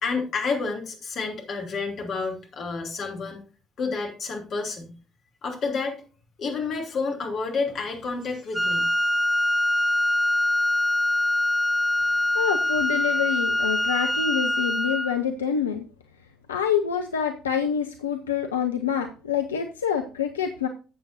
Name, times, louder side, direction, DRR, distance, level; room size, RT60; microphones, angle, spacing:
voice 1, 0.0-3.4 3.8-4.9 5.4-6.0 6.4-8.9, left 4 dB, 50° left, 2 dB, 3.1 m, -29 dB
Wind instrument woodwind instrument, 8.5-15.2, left 1 dB, ahead, 0.9 m, -24 dB
voice 2, 12.3-15.8 16.5-20.7, left 8 dB, 80° left, 6 dB, 0.6 m, -26 dB
13.5 x 7.9 x 2.7 m, 0.35 s
figure-of-eight pair, 50°, 0 cm